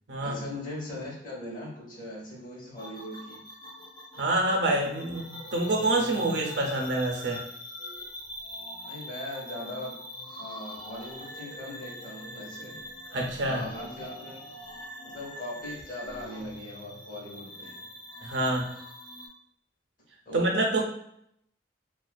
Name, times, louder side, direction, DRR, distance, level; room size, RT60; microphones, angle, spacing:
voice 1, 0.2-3.4 8.9-12.8 13.4-14.4 15.0-17.8 20.3-20.8, left 1 dB, 50° left, -4 dB, 0.9 m, -40 dB
sound 1, 2.8-19.3, left 1 dB, 25° left, 0.5 m, -43 dB
voice 2, 4.2-7.4 13.1-13.6 18.2-18.7 20.3-20.8, right 2 dB, 85° right, 1 dB, 0.6 m, -27 dB
2.4 x 2.3 x 2.2 m, 0.71 s
head